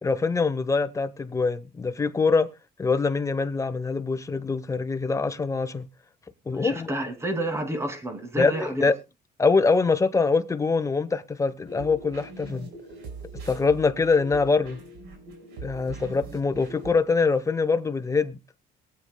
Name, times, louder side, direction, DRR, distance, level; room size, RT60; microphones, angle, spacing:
voice 1, 0.0-2.5 2.8-5.9 6.5-6.9 8.4-8.9 9.4-12.7 13.4-14.8 15.6-18.4, left 4 dB, 20° left, 1.0 m, -24 dB
voice 2, 6.5-8.9, right 1 dB, 15° right, 2.5 m, -30 dB
sound 1, 11.7-16.9, right 3 dB, 85° right, 4.9 m, -41 dB
22.5 x 8.2 x 2.3 m
cardioid pair, 110°, 17 cm